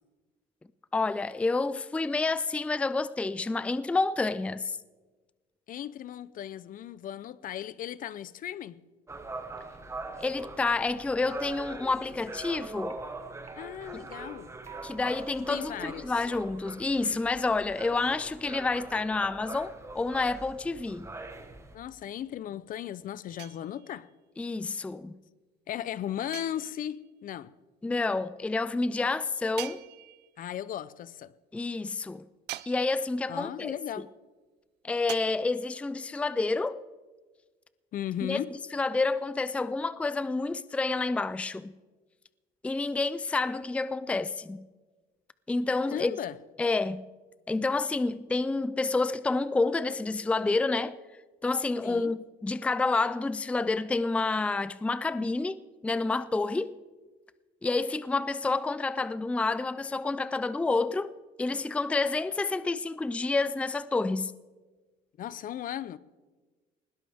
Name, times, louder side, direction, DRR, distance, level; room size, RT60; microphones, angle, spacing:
voice 1, 0.9-4.8 10.2-13.0 13.9-14.0 14.8-21.1 24.4-25.1 27.8-29.8 31.5-32.2 32.7-33.7 34.8-36.8 38.3-38.4 38.7-41.7 42.6-44.6 45.5-46.1 46.6-47.0 47.5-51.0 51.4-55.6 55.8-56.7 57.6-61.1 61.4-64.3, left 3 dB, 5° left, 0.4 m, -29 dB
voice 2, 5.7-8.8 13.5-14.5 15.5-16.3 21.7-24.1 25.7-27.5 30.4-31.3 33.3-34.1 37.9-38.5 45.9-46.4 51.8-52.1 65.2-66.0, left 11 dB, 55° left, 0.6 m, -36 dB
sound 1, 9.1-21.8, right 3 dB, 15° right, 1.4 m, -43 dB
sound 2, 10.7-16.3, right 4 dB, 35° right, 1.7 m, -49 dB
sound 3, 23.4-24.1 26.3-27.1 29.6-30.5 32.5-33.3 35.1-35.2, right 16 dB, 75° right, 0.6 m, -43 dB
20.0 x 17.0 x 3.5 m
cardioid pair, 110°, 17 cm